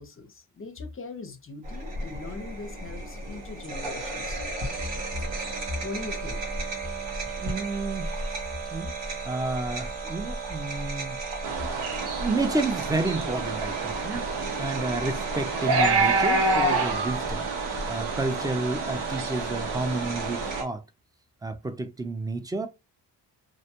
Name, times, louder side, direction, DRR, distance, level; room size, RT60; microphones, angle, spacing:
voice 1, 0.0-4.4 5.8-6.4, left 3 dB, 30° left, 0.6 m, -40 dB
sound 1, 1.6-20.6, right 3 dB, 90° right, 1.1 m, -34 dB
voice 2, 7.4-8.1 8.7-8.9 9.3-11.2 12.1-14.2 14.6-17.5 17.9-20.8 21.4-22.7, right 2 dB, 10° right, 0.3 m, -30 dB
sound 2, 11.4-20.6, right 3 dB, 65° right, 0.8 m, -28 dB
2.5 x 2.1 x 2.8 m
cardioid pair, 95°, 43 cm